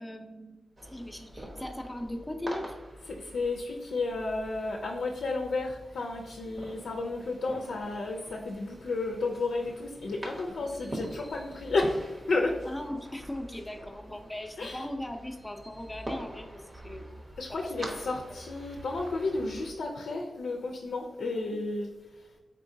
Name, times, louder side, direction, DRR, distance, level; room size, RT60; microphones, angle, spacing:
voice 1, 0.0-2.6 12.7-17.2 17.6-17.7 18.0-18.1 21.2-21.5, left 1 dB, 15° left, 3 dB, 0.5 m, -39 dB
sound 1, 0.8-19.7, right 1 dB, 45° right, 1.0 m, -45 dB
voice 2, 3.1-12.6 14.6-14.9 17.4-21.9, left 3 dB, 85° left, 0 dB, 0.4 m, -32 dB
3.8 x 3.7 x 2.6 m, 1.2 s
cardioid pair, 70°, 0 cm